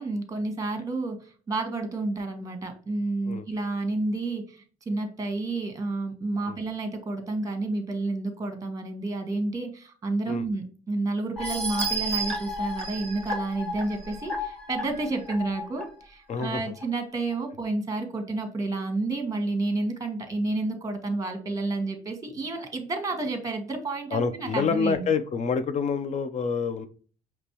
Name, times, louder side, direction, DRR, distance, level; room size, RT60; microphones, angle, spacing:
voice 1, 0.0-25.1, right 2 dB, 20° right, 6 dB, 1.2 m, -30 dB
sound 1, 11.4-15.8 16.3-16.4 16.8-16.9, right 1 dB, 5° left, 1.3 m, -32 dB
voice 2, 16.3-16.7 24.1-26.9, left 5 dB, 45° left, 11 dB, 0.7 m, -27 dB
5.1 x 3.0 x 3.0 m, 0.40 s
cardioid pair, 110°, 17 cm